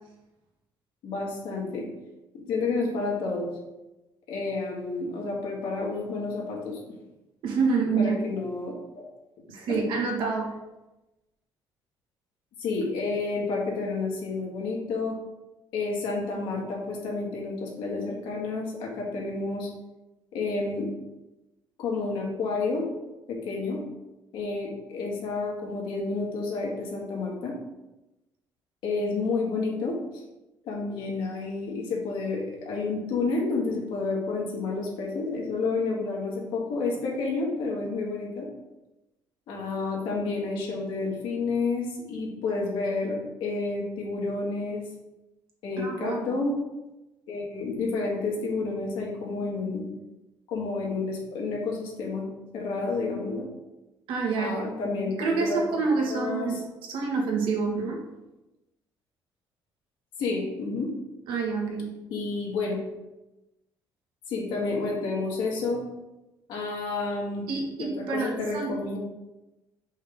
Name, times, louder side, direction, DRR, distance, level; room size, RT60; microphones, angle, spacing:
voice 1, 1.0-1.9 2.3-3.5 4.3-6.8 8.0-9.1 9.7-9.9 12.6-15.2 15.7-19.7 20.3-20.9 21.8-22.9 23.3-23.8 24.3-27.6 28.8-30.2 30.6-38.5 39.5-44.8 45.6-46.6 47.3-49.9 50.5-52.3 52.5-53.5 54.4-55.8 56.1-56.6 60.2-60.9 62.1-62.8 64.3-65.8 66.5-67.5 67.8-69.0, left 3 dB, 75° left, -2 dB, 1.9 m, -30 dB
voice 2, 7.4-8.2 9.5-10.5 45.8-46.3 54.1-54.6 55.2-56.6 56.9-58.0 61.3-62.0 67.5-68.7, right 4 dB, 75° right, 0 dB, 1.4 m, -27 dB
5.3 x 3.6 x 5.2 m, 1.0 s
cardioid pair, 175°, 8 cm